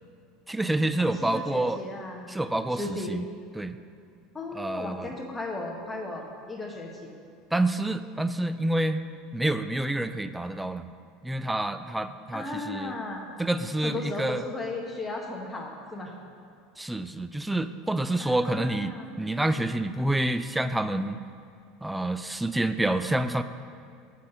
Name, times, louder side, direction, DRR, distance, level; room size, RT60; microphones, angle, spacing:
voice 1, 0.5-1.8 2.3-3.2 3.5-3.8 4.5-5.1 7.5-9.1 9.3-10.9 11.2-12.9 13.4-14.4 16.8-21.3 21.8-23.4, right 1 dB, 5° right, 11 dB, 0.4 m, -28 dB
voice 2, 1.0-2.3 2.7-3.1 4.3-7.1 12.3-13.2 13.8-16.2 18.2-19.1, left 2 dB, 15° left, 0 dB, 1.3 m, -36 dB
7.3 x 4.2 x 6.5 m, 2.4 s
hypercardioid pair, 80°, 0 cm